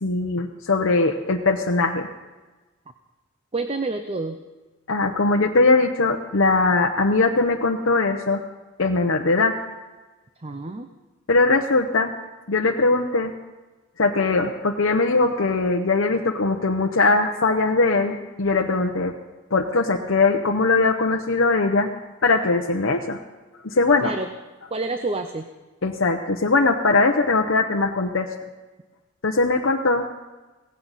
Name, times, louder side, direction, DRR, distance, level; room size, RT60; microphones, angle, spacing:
voice 1, 0.0-2.1 4.9-8.4 8.8-9.6 11.3-12.1 12.5-13.3 14.0-19.1 19.5-21.9 22.2-23.2 23.6-24.1 25.8-28.3 29.2-30.0, left 3 dB, 70° left, 2 dB, 0.8 m, -20 dB
voice 2, 3.5-4.4 10.4-10.9 24.0-24.3 24.7-25.5, right 3 dB, 30° right, 7 dB, 0.6 m, -28 dB
17.5 x 16.0 x 4.1 m, 1.2 s
head